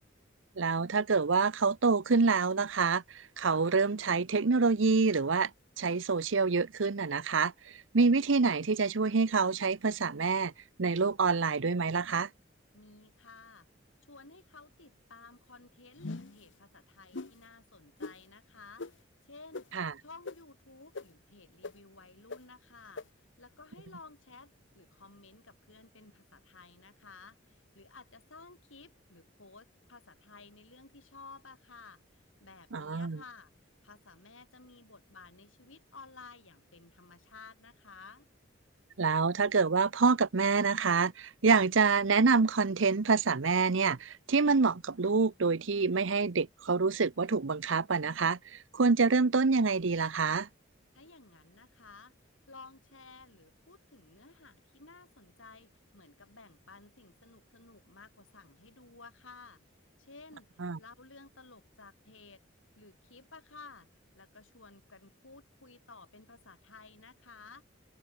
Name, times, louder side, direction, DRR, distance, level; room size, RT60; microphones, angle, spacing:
voice 1, 0.6-5.5 5.8-10.5 10.8-12.3 19.7-19.9 32.7-33.2 39.0-50.5 60.6-60.8, right 4 dB, 75° right, 0.8 m, -27 dB
voice 2, 12.7-13.7 14.1-18.9 19.2-19.7 20.0-33.5 33.8-38.2 50.9-52.1 52.5-59.6 60.0-60.5 60.8-62.4 62.8-63.9 64.1-67.6, left 4 dB, 85° left, 7.1 m, -54 dB
sound 1, 16.0-16.4 17.1-17.3 18.0-18.1 18.8-18.9 19.5-19.6 20.2-20.3 20.9-21.0 21.6-21.7 22.3-22.4 23.0-23.1, left 3 dB, 65° left, 1.0 m, -39 dB
open air
head